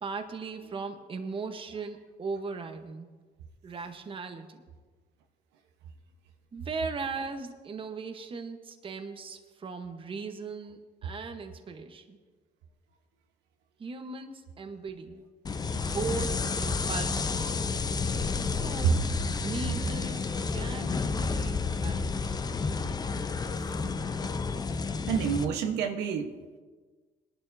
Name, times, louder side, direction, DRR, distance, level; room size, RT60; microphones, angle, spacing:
voice 1, 0.0-3.1 3.6-4.6 6.5-12.2 13.8-15.2 15.8-17.6 18.4-19.1 19.4-20.2 20.5-22.4, right 4 dB, 30° right, 7 dB, 1.0 m, -38 dB
sound 1, 15.5-25.5, left 4 dB, 25° left, 0.6 m, -31 dB
voice 2, 22.8-23.3 25.1-26.3, right 7 dB, 85° right, 4 dB, 1.1 m, -30 dB
20.5 x 11.5 x 2.7 m, 1.4 s
cardioid pair, 110°, 17 cm